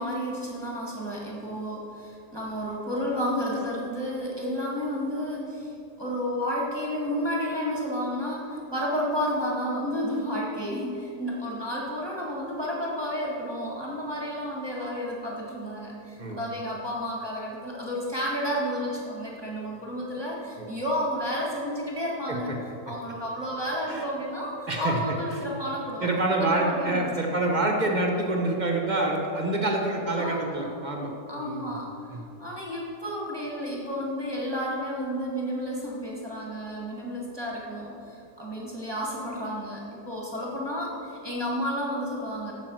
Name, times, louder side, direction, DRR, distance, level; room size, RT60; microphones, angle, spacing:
voice 1, 0.0-5.7 6.0-22.6 22.8-26.1 26.4-27.1 30.2-30.6 31.3-31.9 32.4-42.5, equal, 15° right, -4 dB, 1.6 m, -31 dB
voice 2, 24.7-25.0 26.0-31.6 32.1-32.2, right 2 dB, 30° right, 1 dB, 1.0 m, -27 dB
9.0 x 6.4 x 7.7 m, 2.7 s
omnidirectional pair, 1.8 m